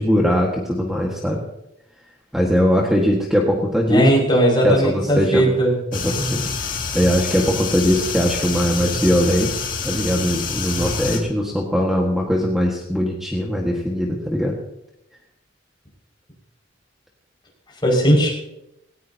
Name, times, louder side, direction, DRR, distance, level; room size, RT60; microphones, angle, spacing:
voice 1, 0.0-1.5 2.3-4.1 4.6-5.5 5.9-6.5 6.9-14.6, equal, ahead, -2 dB, 1.7 m, -20 dB
voice 2, 3.9-5.7 17.8-18.3, right 1 dB, 25° left, -3 dB, 5.9 m, -17 dB
sound 1, 5.9-11.2, left 4 dB, 45° left, 2.3 m, -27 dB
18.5 x 18.0 x 2.9 m, 0.86 s
head